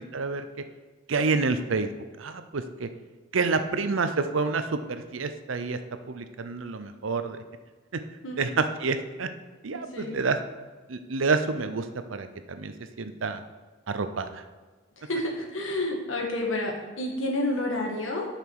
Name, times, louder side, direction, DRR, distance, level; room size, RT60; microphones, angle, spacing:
voice 1, 0.1-0.4 1.1-1.9 2.2-2.9 3.3-5.8 6.1-7.4 7.9-8.0 8.3-9.3 9.6-10.4 10.9-11.9 12.1-13.4 13.9-14.4, right 4 dB, 85° right, 9 dB, 0.7 m, -28 dB
voice 2, 9.7-10.2 15.0-18.3, left 1 dB, 90° left, 0 dB, 1.7 m, -30 dB
8.5 x 5.8 x 4.7 m, 1.3 s
head